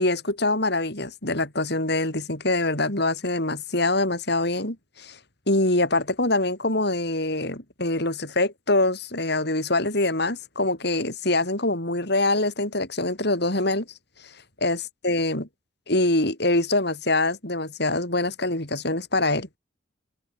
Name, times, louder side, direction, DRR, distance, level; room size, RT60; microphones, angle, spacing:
voice 1, 0.0-5.2 5.5-13.9 14.6-15.5 15.9-19.5, left 2 dB, 55° left, 5.4 m, -24 dB
open air
head